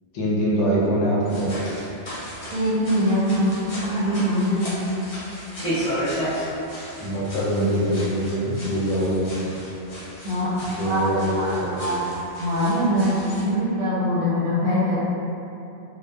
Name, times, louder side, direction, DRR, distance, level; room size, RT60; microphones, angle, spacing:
voice 1, 0.1-1.7 7.0-9.4 10.8-12.0, equal, 80° left, -6 dB, 0.9 m, -23 dB
sound 1, 1.2-13.5, equal, 40° left, 0.6 m, -34 dB
voice 2, 2.5-3.5 3.8-4.9 10.2-10.5 10.8-11.0 11.4-11.5 11.8-15.0, equal, 50° right, -10 dB, 0.6 m, -23 dB
2.7 x 2.1 x 2.2 m, 2.8 s
omnidirectional pair, 1.2 m